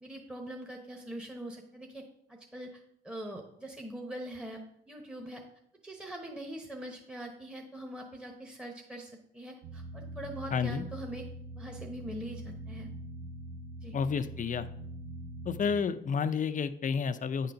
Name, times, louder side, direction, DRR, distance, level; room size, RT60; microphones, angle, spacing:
voice 1, 0.0-2.0 2.3-4.6 4.9-5.4 5.8-11.3 11.6-12.9 13.8-13.9, right 1 dB, 5° right, 1 dB, 1.0 m, -43 dB
sound 1, 9.6-15.7, right 1 dB, 55° right, 1.1 m, -43 dB
voice 2, 10.5-10.8 13.9-14.7 15.5-17.5, left 6 dB, 40° left, 12 dB, 0.5 m, -30 dB
8.9 x 3.9 x 5.7 m, 0.75 s
cardioid pair, 90°, 20 cm